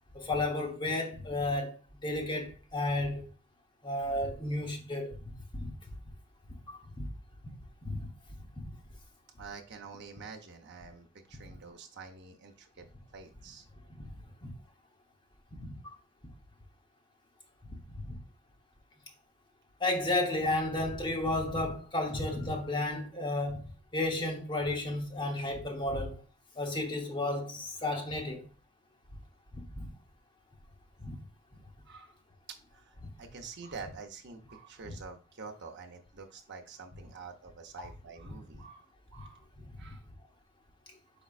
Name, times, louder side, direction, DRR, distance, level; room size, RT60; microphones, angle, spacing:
voice 1, 0.1-1.8 2.0-3.2 3.8-5.2 5.5-5.7 6.7-7.1 7.8-8.1 14.0-14.1 14.4-14.5 15.5-15.9 17.9-18.2 19.8-23.6 23.9-26.2 26.6-28.5 29.5-29.9 31.0-31.2 34.8-34.9 37.8-37.9 39.8-39.9, left 2 dB, 20° left, 1.0 m, -33 dB
voice 2, 9.4-12.9 13.1-13.7 31.8-32.1 32.7-39.4 39.8-40.0, right 5 dB, 55° right, 0.7 m, -47 dB
5.1 x 4.3 x 2.4 m
head